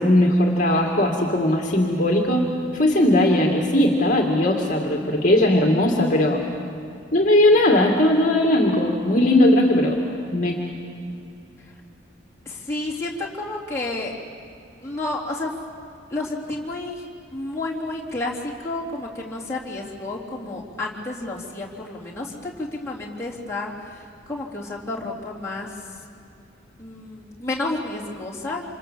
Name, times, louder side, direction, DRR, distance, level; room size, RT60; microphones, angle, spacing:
voice 1, 0.0-2.5 2.7-6.4 7.1-10.0 10.3-10.6, left 1 dB, 40° left, 0 dB, 2.3 m, -18 dB
voice 2, 12.5-14.1 14.8-15.5 16.1-17.0 17.3-25.7 26.8-28.6, left 2 dB, 15° left, -6 dB, 3.6 m, -31 dB
27.5 x 27.5 x 7.5 m, 2.6 s
head